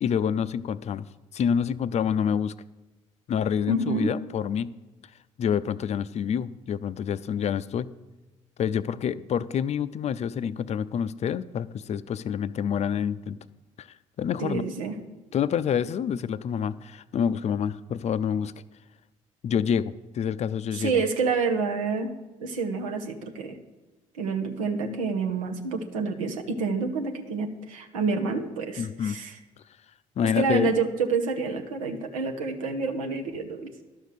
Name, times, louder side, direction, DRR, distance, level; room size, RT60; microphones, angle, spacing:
voice 1, 0.0-1.0 1.3-2.5 3.3-4.7 5.4-7.9 8.6-13.4 13.8-13.9 14.2-14.7 15.3-18.5 19.4-21.0 28.8-29.2 30.2-30.7, left 8 dB, 40° left, 16 dB, 0.5 m, -27 dB
voice 2, 3.7-4.1 14.4-14.9 20.7-22.1 22.4-23.6 24.2-29.4 30.2-33.7, right 4 dB, 80° right, 4 dB, 0.9 m, -28 dB
11.5 x 6.6 x 6.5 m, 1.1 s
hypercardioid pair, 50°, 17 cm